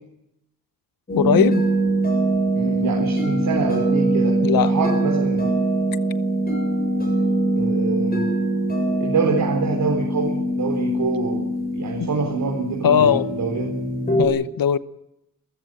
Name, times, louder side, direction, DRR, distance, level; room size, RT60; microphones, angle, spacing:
voice 1, 1.1-1.6 4.4-4.7 12.8-13.3 14.2-14.8, left 9 dB, 70° left, 1.0 m, -18 dB
sound 1, 1.1-14.3, right 2 dB, 25° left, 7.6 m, -22 dB
voice 2, 2.5-5.6 7.5-8.3 9.0-11.5 11.7-13.8, right 4 dB, 65° right, 4.5 m, -25 dB
28.5 x 15.0 x 7.9 m
wide cardioid pair, 130°, 36 cm